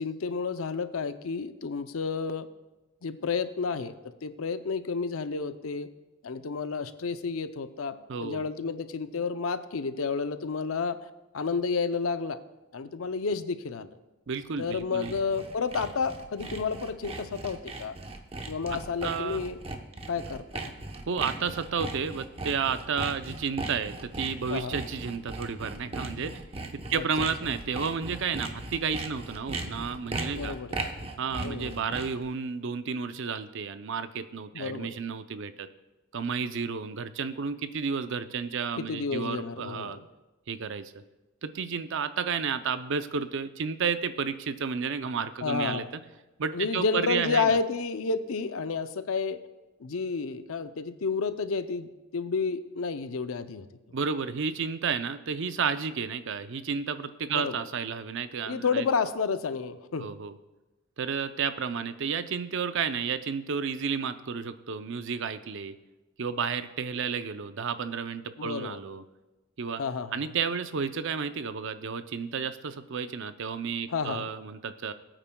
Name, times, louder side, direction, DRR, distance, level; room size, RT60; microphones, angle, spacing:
voice 1, 0.0-2.5 3.0-3.9 4.2-5.9 6.2-11.0 11.3-12.4 12.7-13.9 14.6-17.9 18.5-19.6 20.1-20.7 24.5-24.8 26.9-27.1 30.3-30.8 31.4-31.9 34.5-35.0 38.8-40.1 45.4-45.9 46.5-49.4 49.8-53.7 57.3-57.6 58.5-60.1 68.4-68.8 69.8-70.2 73.9-74.3, left 5 dB, 90° left, 11 dB, 0.6 m, -31 dB
voice 2, 8.1-8.5 14.3-15.1 18.7-19.4 21.1-26.4 26.9-30.6 31.2-35.7 36.1-40.0 40.5-40.9 41.4-46.0 46.4-47.6 53.9-58.9 60.0-60.4 61.0-65.7 66.2-69.0 69.6-69.8 70.1-74.9, right 6 dB, 65° right, 11 dB, 0.6 m, -32 dB
Sawing, 14.4-32.3, right 2 dB, 30° right, 0.9 m, -38 dB
20.5 x 8.9 x 2.3 m, 1.1 s
head